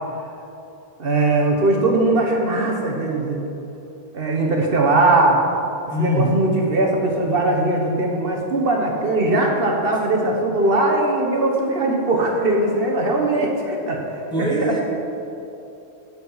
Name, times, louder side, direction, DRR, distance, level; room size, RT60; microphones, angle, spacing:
voice 1, 1.0-3.4 4.1-5.4 6.0-14.0 14.4-14.7, right 2 dB, 65° right, 0 dB, 1.3 m, -20 dB
voice 2, 5.9-6.4 14.3-14.8, left 1 dB, 5° left, -3 dB, 1.2 m, -22 dB
12.5 x 4.7 x 5.5 m, 2.9 s
omnidirectional pair, 1.0 m